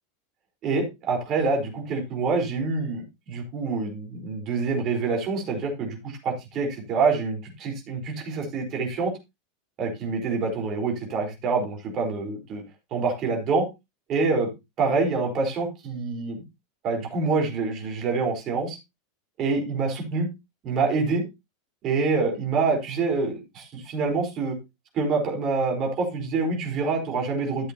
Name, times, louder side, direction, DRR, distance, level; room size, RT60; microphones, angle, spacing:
voice 1, 0.6-9.1 9.8-12.6 12.9-13.7 14.1-14.5 14.8-16.4 16.8-18.8 19.4-20.3 20.6-21.2 21.8-24.6 24.9-27.7, right 4 dB, 40° right, 1 dB, 4.3 m, -26 dB
13.0 x 7.9 x 2.9 m, 0.23 s
figure-of-eight pair, 85°, 0 cm